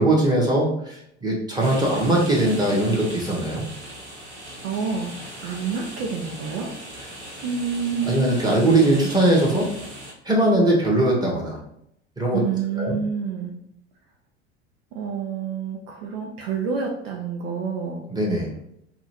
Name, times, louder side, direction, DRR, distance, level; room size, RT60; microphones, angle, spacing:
voice 1, 0.0-3.6 8.0-9.7 10.3-11.6 12.2-12.4 12.8-12.9 18.1-18.5, right 1 dB, 10° right, -3 dB, 1.7 m, -20 dB
sound 1, 1.6-10.1, right 1 dB, 85° right, 1.2 m, -39 dB
voice 2, 4.6-5.1 5.4-6.7 7.4-8.4 12.3-13.5 14.9-18.0, right 5 dB, 55° right, 0 dB, 0.8 m, -28 dB
5.8 x 2.6 x 3.0 m, 0.75 s
figure-of-eight pair, 75°, 34 cm